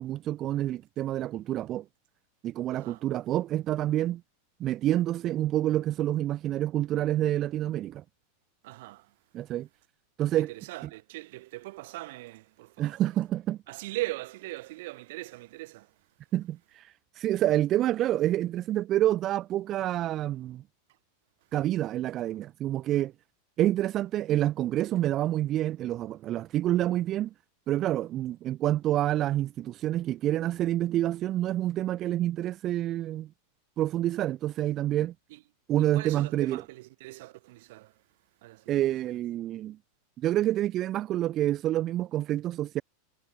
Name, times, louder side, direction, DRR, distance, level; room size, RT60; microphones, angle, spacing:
voice 1, 0.0-1.9 2.4-4.2 4.6-8.0 9.3-9.7 10.2-10.5 10.8-10.9 12.8-13.6 16.3-20.6 21.5-23.1 23.6-27.3 27.7-33.3 33.8-35.1 35.7-36.6 38.7-39.8 40.2-42.8, right 13 dB, 25° right, 1.9 m, -28 dB
voice 2, 8.6-9.1 10.3-13.0 13.7-15.9 35.9-37.9 38.4-38.7, right 19 dB, 55° right, 3.6 m, -40 dB
supercardioid pair, 170°, 0 cm